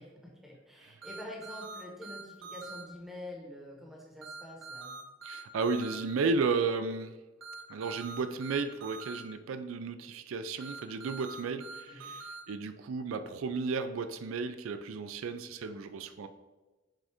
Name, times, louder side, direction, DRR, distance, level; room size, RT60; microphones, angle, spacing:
voice 1, 0.0-5.0 11.9-12.1, left 1 dB, ahead, -2 dB, 1.2 m, -46 dB
sound 1, 1.0-2.8 4.2-6.0 7.4-9.2 10.6-12.4, right 3 dB, 75° right, 1.3 m, -44 dB
voice 2, 5.2-7.1 7.7-16.3, right 4 dB, 90° right, 10 dB, 0.4 m, -33 dB
7.5 x 2.7 x 4.8 m, 1.2 s
head